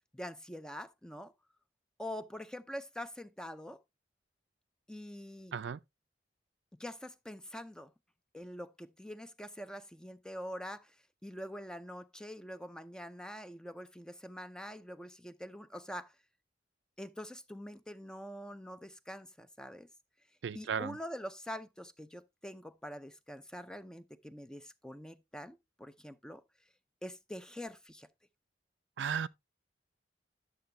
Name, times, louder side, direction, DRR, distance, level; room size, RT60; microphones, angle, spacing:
voice 1, 0.1-1.3 2.0-3.8 4.9-5.5 6.8-7.9 8.3-11.0 11.2-16.2 17.0-19.9 20.5-26.4 27.0-28.1, equal, 5° left, 0.5 m, -45 dB
voice 2, 20.4-21.0 29.0-29.3, right 7 dB, 85° right, 0.4 m, -35 dB
10.5 x 6.8 x 2.7 m
head